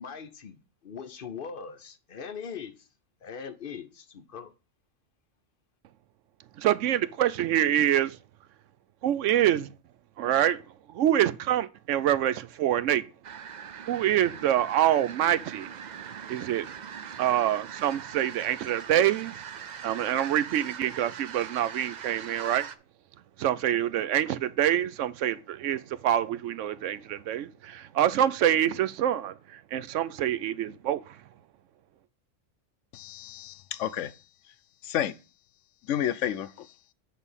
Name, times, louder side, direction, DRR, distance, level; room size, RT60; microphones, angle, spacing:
voice 1, 0.0-2.8 3.2-4.5, left 6 dB, 50° left, 0.8 m, -41 dB
voice 2, 6.6-8.2 9.0-9.7 10.2-10.6 10.9-13.0 13.9-15.7 16.0-16.7 17.2-22.7 23.4-31.1, right 11 dB, 80° right, 0.9 m, -26 dB
sound 1, 13.2-22.8, right 7 dB, 55° right, 0.5 m, -41 dB
voice 3, 32.9-34.1 34.8-35.1 35.9-36.7, left 11 dB, 75° left, 0.9 m, -30 dB
8.1 x 4.1 x 5.5 m
omnidirectional pair, 1.3 m